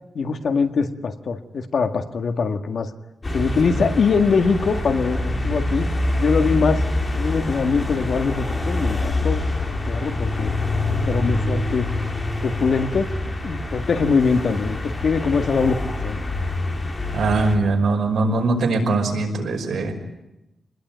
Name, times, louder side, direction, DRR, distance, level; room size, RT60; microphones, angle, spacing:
voice 1, 0.2-2.9 3.3-5.9 6.2-6.8 7.1-10.5 10.9-11.9 12.4-13.1 13.4-16.2, left 5 dB, 65° left, 7 dB, 1.8 m, -22 dB
sound 1, 3.2-17.6, left 2 dB, 25° left, 3.7 m, -25 dB
voice 2, 17.1-19.9, right 3 dB, 75° right, 2 dB, 5.5 m, -21 dB
27.0 x 20.5 x 9.4 m, 0.92 s
wide cardioid pair, 130°, 0 cm